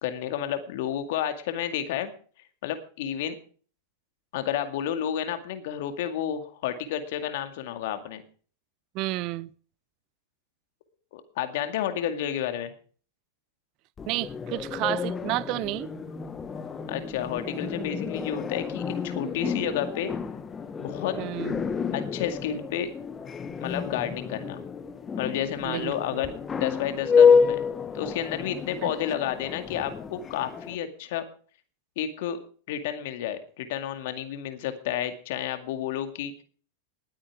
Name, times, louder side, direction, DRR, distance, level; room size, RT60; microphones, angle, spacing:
voice 1, 0.0-2.1 2.6-3.4 4.3-8.2 11.1-12.7 16.9-20.1 20.8-21.2 21.9-22.9 23.6-24.6 25.2-27.6 27.9-31.3 32.0-32.4 32.7-36.4, left 10 dB, 65° left, 2.2 m, -31 dB
voice 2, 8.9-9.5 14.1-15.9 21.2-21.7 25.6-26.2 28.8-28.9, right 19 dB, 50° right, 0.5 m, -31 dB
sound 1, 14.0-30.8, left 6 dB, 20° left, 1.3 m, -28 dB
20.0 x 8.8 x 4.9 m
hypercardioid pair, 105°, 0 cm